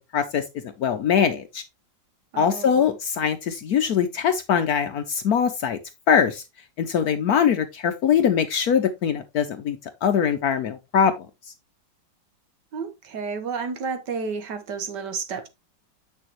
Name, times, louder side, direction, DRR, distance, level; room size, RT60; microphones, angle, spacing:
voice 1, 0.1-1.6 2.4-5.8 6.1-6.4 6.8-11.1, left 7 dB, 65° left, 1.0 m, -22 dB
voice 2, 2.3-2.9 12.7-15.5, right 5 dB, 65° right, 1.6 m, -31 dB
7.7 x 6.5 x 3.0 m
omnidirectional pair, 2.1 m